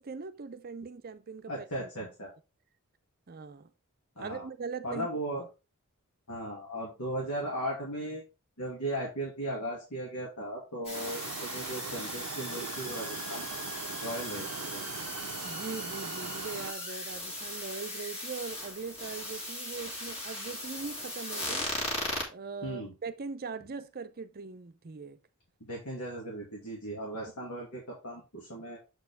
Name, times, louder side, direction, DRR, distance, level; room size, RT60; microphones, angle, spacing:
voice 1, 0.0-1.9 3.3-3.7 4.2-5.1 15.4-21.7 22.3-25.2, right 4 dB, 45° right, 0.6 m, -41 dB
voice 2, 1.5-2.3 4.2-4.5 4.8-5.4 6.3-8.2 8.6-13.5 14.0-14.8 22.6-22.9 25.6-28.8, right 1 dB, 85° left, 2.3 m, -37 dB
sound 1, 10.8-22.2, left 1 dB, 25° left, 2.3 m, -38 dB
sound 2, 10.9-16.7, right 8 dB, 90° right, 0.4 m, -42 dB
7.6 x 4.7 x 3.4 m
head